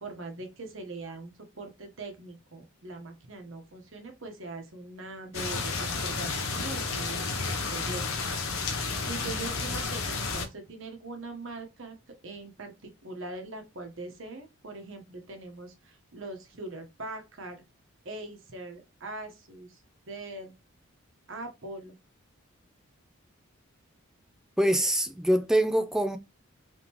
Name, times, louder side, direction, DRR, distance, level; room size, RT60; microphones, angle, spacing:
voice 1, 0.0-8.1 9.0-12.0 12.2-17.6 18.0-19.8 20.1-20.5 21.3-22.0, right 2 dB, 65° right, 1.0 m, -42 dB
sound 1, 5.3-10.5, left 4 dB, 80° left, 0.9 m, -31 dB
voice 2, 24.6-26.2, right 1 dB, ahead, 0.3 m, -24 dB
3.6 x 3.5 x 2.9 m
head